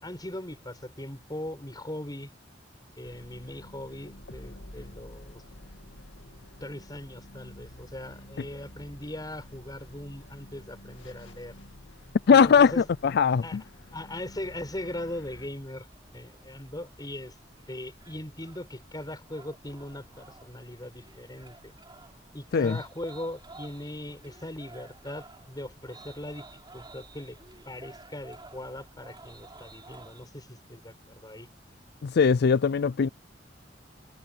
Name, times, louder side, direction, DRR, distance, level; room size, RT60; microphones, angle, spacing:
voice 1, 0.0-2.3 3.0-5.4 6.6-11.5 12.3-12.9 13.4-13.6 13.9-17.4 17.7-21.7 22.3-26.5 26.7-27.4 27.7-31.5, left 1 dB, 20° left, 6.0 m, -40 dB
sound 1, 3.0-15.5, left 1 dB, 85° left, 2.2 m, -49 dB
voice 2, 12.3-13.6 22.5-22.8 32.0-33.1, left 6 dB, 60° left, 0.4 m, -20 dB
sound 2, 14.7-30.3, right 3 dB, 25° right, 7.5 m, -53 dB
head